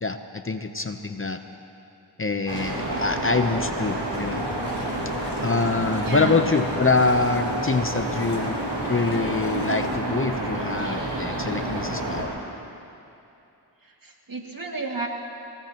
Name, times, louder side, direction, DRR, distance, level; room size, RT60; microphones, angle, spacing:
voice 1, 0.0-1.4 2.2-4.4 5.4-8.6 8.9-12.3, left 3 dB, 30° left, 7 dB, 0.8 m, -25 dB
sound 1, 2.5-12.2, right 1 dB, 90° right, 3.9 m, -29 dB
Domestic sounds home sounds, 3.7-10.0, left 3 dB, 70° left, 1.5 m, -39 dB
voice 2, 6.0-6.4 13.8-15.1, right 3 dB, 50° right, 0 dB, 2.3 m, -32 dB
24.5 x 17.5 x 3.0 m, 2.7 s
cardioid pair, 45°, 42 cm